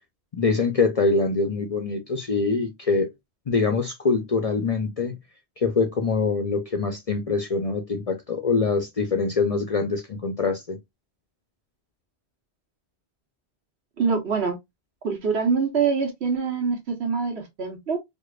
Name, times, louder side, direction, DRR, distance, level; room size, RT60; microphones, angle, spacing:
voice 1, 0.3-3.1 3.5-5.2 5.6-10.8, left 4 dB, 45° left, 0.5 m, -24 dB
voice 2, 14.0-14.6 15.0-18.0, right 5 dB, 70° right, 1.4 m, -24 dB
4.7 x 2.3 x 2.3 m
omnidirectional pair, 1.1 m